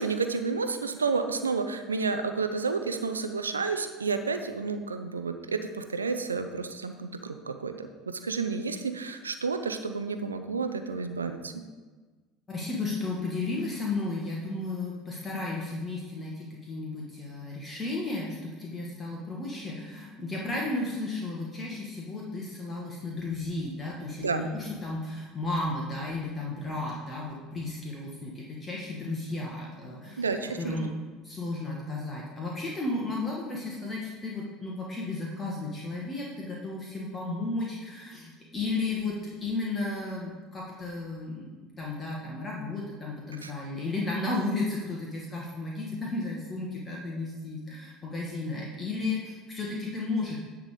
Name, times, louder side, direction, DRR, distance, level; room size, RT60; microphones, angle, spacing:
voice 1, 0.0-11.5 24.2-24.4 30.2-30.8 43.4-43.5, right 4 dB, 85° right, 8 dB, 0.6 m, -30 dB
voice 2, 12.5-30.2 30.6-31.0 31.2-50.4, left 2 dB, 25° left, -3 dB, 1.6 m, -34 dB
10.5 x 3.7 x 6.6 m, 1.3 s
figure-of-eight pair, 70°, 0 cm